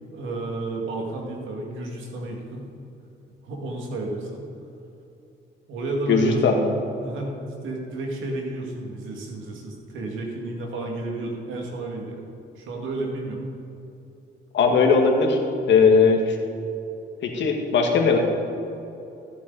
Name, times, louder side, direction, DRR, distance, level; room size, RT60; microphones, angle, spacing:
voice 1, 0.1-2.7 3.4-4.4 5.7-6.5 7.0-7.4 7.6-12.3 12.6-13.4 15.9-16.0, right 2 dB, 85° right, 0 dB, 2.1 m, -31 dB
voice 2, 6.1-6.5 14.5-15.4 15.7-16.4 17.2-18.2, left 5 dB, 70° left, 2 dB, 1.7 m, -18 dB
14.0 x 8.3 x 4.0 m, 2.8 s
cardioid pair, 90°, 20 cm